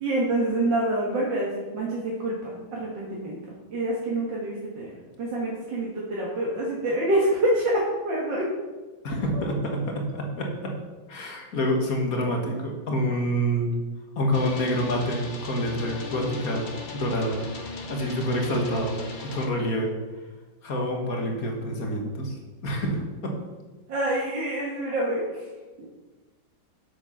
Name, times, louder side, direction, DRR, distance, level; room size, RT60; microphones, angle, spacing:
voice 1, 0.0-3.4 3.7-4.9 5.2-8.5 23.9-25.3 25.8-25.9, right 1 dB, 65° right, -4 dB, 2.2 m, -26 dB
voice 2, 9.0-10.8 11.1-13.7 14.2-17.4 17.9-19.0 19.2-19.9 20.6-22.3 22.6-23.3, equal, 50° left, 2 dB, 1.9 m, -27 dB
sound 1, 14.3-19.5, left 3 dB, 30° left, 0.9 m, -38 dB
8.0 x 7.8 x 5.8 m, 1.2 s
omnidirectional pair, 2.2 m